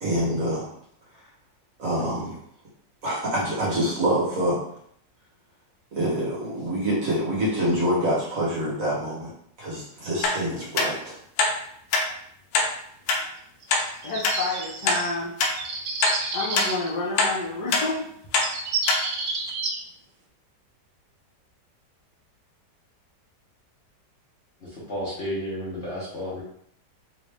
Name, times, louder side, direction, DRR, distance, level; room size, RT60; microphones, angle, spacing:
voice 1, 0.0-0.7 1.8-2.4 3.0-4.6 5.9-9.3 9.6-11.2, right 1 dB, 50° right, -6 dB, 1.4 m, -26 dB
sound 1, 10.2-10.4 10.8-10.9 11.4-11.5 11.9-12.1 12.5-12.7 13.1-13.2 13.7-13.8 14.2-14.4 14.9-15.0 15.4-15.5 16.0-16.2 16.5-16.7 17.2-17.3 17.7-17.9 18.3-18.5 18.9-19.0 19.5-19.6, left 3 dB, 85° left, 1.3 m, -22 dB
sound 2, 13.6-15.2 15.6-16.9 18.0-18.1 18.4-19.8, right 3 dB, 75° right, 1.2 m, -30 dB
voice 2, 14.0-15.4 16.3-18.1, left 3 dB, 70° left, -4 dB, 1.4 m, -29 dB
voice 3, 24.6-26.4, equal, 45° left, -7 dB, 1.1 m, -32 dB
3.5 x 2.5 x 3.3 m, 0.68 s
omnidirectional pair, 1.9 m